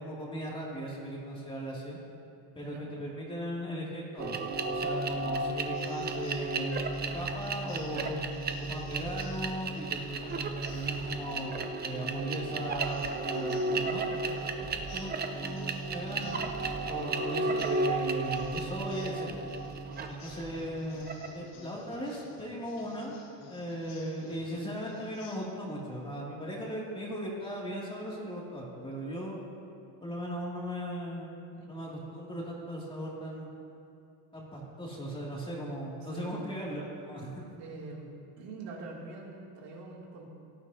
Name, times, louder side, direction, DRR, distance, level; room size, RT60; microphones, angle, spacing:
voice 1, 0.0-2.0 2.5-4.4 4.7-8.2 8.6-14.0 14.7-16.4 16.9-19.4 20.1-23.2 23.5-29.4 30.0-31.3 31.7-33.5 34.3-37.3, equal, 10° left, -4 dB, 2.4 m, -38 dB
sound 1, 4.2-21.4, right 3 dB, 20° right, 0.6 m, -34 dB
sound 2, 5.7-25.3, left 3 dB, 90° left, 2.7 m, -54 dB
voice 2, 16.1-16.5 31.8-32.1 36.0-36.5 37.6-38.1 38.4-40.4, right 3 dB, 70° right, -3 dB, 2.7 m, -45 dB
17.5 x 11.0 x 2.7 m, 2.6 s
cardioid pair, 125°, 44 cm